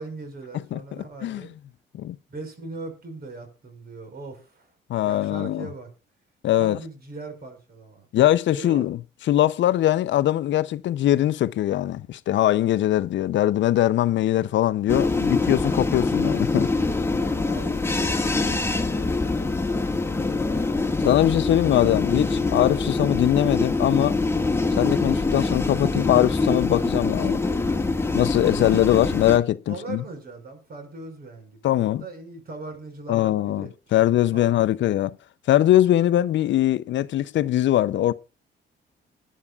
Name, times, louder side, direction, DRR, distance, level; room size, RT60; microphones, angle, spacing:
voice 1, 0.0-1.5 2.3-4.7 5.0-5.9 6.6-8.1 8.5-8.9 17.1-20.7 21.6-21.7 28.6-28.8 29.7-34.6, right 3 dB, 50° right, 5.8 m, -40 dB
voice 2, 4.9-5.7 6.4-6.8 8.1-9.0 9.3-16.7 21.0-24.1 24.8-27.4 28.1-30.0 31.6-32.0 33.1-35.2 35.5-38.1, left 13 dB, 70° left, 0.6 m, -21 dB
sound 1, 14.9-29.4, left 3 dB, 10° left, 1.7 m, -24 dB
20.5 x 11.0 x 2.4 m
cardioid pair, 90°, 20 cm